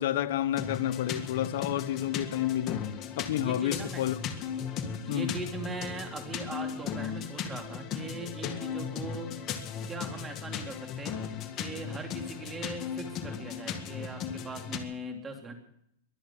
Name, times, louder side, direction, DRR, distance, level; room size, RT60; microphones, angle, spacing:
voice 1, 0.0-2.9 3.2-4.2 5.1-5.3, left 12 dB, 65° left, 1.0 m, -30 dB
sound 1, 0.5-14.8, left 7 dB, 30° left, 1.8 m, -37 dB
voice 2, 3.4-4.0 4.9-9.3 9.7-11.2 11.6-15.5, right 2 dB, 15° right, 3.0 m, -40 dB
22.5 x 8.6 x 7.3 m
supercardioid pair, 140°, 0 cm